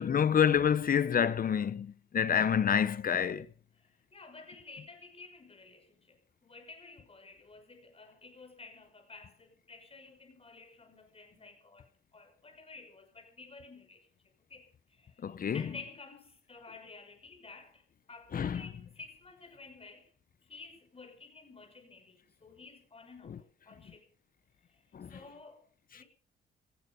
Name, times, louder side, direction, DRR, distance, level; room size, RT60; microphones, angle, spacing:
voice 1, 0.0-3.5 15.2-15.6 18.3-18.6 24.9-25.1, left 8 dB, 45° left, 1.0 m, -27 dB
voice 2, 3.7-20.1 20.4-24.1 24.7-25.6 25.9-26.1, left 4 dB, 30° left, 6.1 m, -52 dB
17.0 x 15.5 x 5.5 m
cardioid pair, 90°, 20 cm